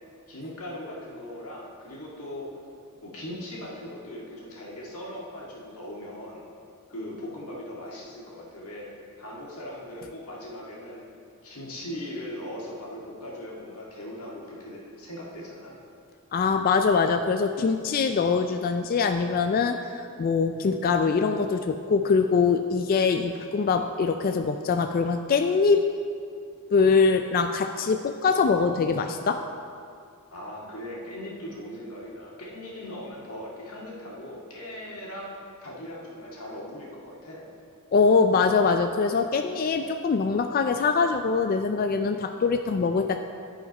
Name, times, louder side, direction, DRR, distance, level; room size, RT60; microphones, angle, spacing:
voice 1, 0.3-2.5 3.0-6.4 6.9-8.9 9.2-11.0 11.4-15.8 30.3-35.3 35.6-37.4, left 1 dB, 75° left, -4 dB, 1.8 m, -39 dB
voice 2, 16.3-25.8 26.7-29.4 37.9-43.2, left 5 dB, 40° left, 6 dB, 0.3 m, -23 dB
11.0 x 5.0 x 5.3 m, 2.4 s
head